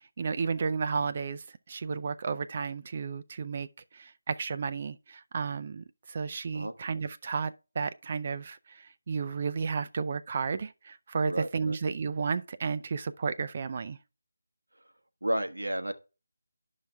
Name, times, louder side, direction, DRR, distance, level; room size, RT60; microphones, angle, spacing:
voice 1, 0.2-3.7 3.9-14.0, right 5 dB, 35° right, 0.4 m, -33 dB
voice 2, 11.3-11.8 15.2-15.9, right 1 dB, 75° right, 1.1 m, -32 dB
10.5 x 5.6 x 3.4 m
figure-of-eight pair, 160°, 0 cm